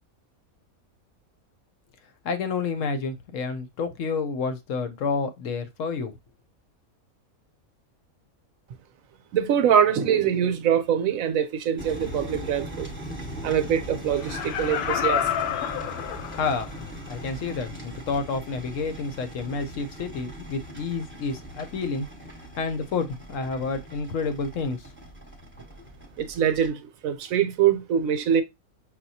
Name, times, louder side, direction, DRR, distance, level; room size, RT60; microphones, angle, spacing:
voice 1, 2.2-6.1 16.3-22.1 22.6-24.9, left 4 dB, 70° left, 0.9 m, -29 dB
voice 2, 9.3-12.9 13.4-15.3 15.5-15.7 26.2-28.4, right 8 dB, 75° right, 1.0 m, -23 dB
sound 1, 11.8-26.7, right 1 dB, 10° right, 1.0 m, -40 dB
Laughter, 14.1-16.8 17.3-17.4, left 10 dB, 90° left, 1.1 m, -29 dB
5.7 x 2.3 x 2.7 m
omnidirectional pair, 1.5 m